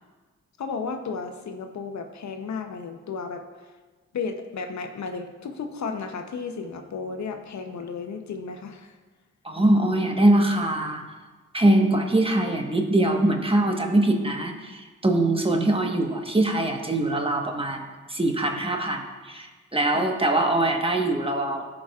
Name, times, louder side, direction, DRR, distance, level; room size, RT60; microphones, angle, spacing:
voice 1, 0.6-3.4 4.1-9.0 19.9-20.1, left 5 dB, 65° left, 6 dB, 0.8 m, -33 dB
voice 2, 9.4-11.0 11.5-21.7, right 1 dB, 20° right, 3 dB, 1.2 m, -23 dB
14.5 x 4.9 x 2.4 m, 1.4 s
supercardioid pair, 45°, 31 cm